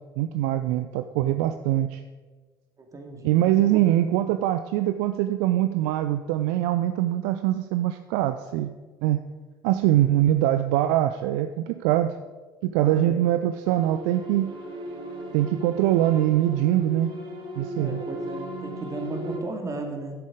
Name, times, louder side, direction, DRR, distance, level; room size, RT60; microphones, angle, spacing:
voice 1, 0.2-2.0 3.2-8.7 9.0-9.2 9.6-12.2 12.6-14.5 15.3-17.1 17.6-18.0, right 13 dB, 60° right, 10 dB, 0.4 m, -23 dB
voice 2, 2.9-3.8 12.8-13.2 17.8-20.1, right 3 dB, 30° right, 4 dB, 2.1 m, -35 dB
Drama Alone on the tundra - atmo orchestral - drama sad mood, 13.6-19.4, equal, 45° right, 1.9 m, -37 dB
11.0 x 7.9 x 4.9 m, 1.3 s
figure-of-eight pair, 60°, 12 cm